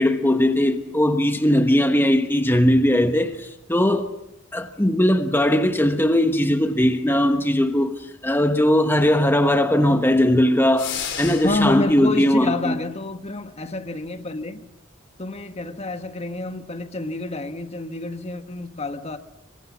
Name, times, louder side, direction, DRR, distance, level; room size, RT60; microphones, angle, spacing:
voice 1, 0.0-4.1 4.5-12.7, left 1 dB, 10° left, 1.2 m, -19 dB
sound 1, 10.8-11.8, left 7 dB, 65° left, 4.2 m, -31 dB
voice 2, 11.4-14.7 15.2-19.2, left 2 dB, 30° left, 1.4 m, -28 dB
27.5 x 23.5 x 7.4 m
head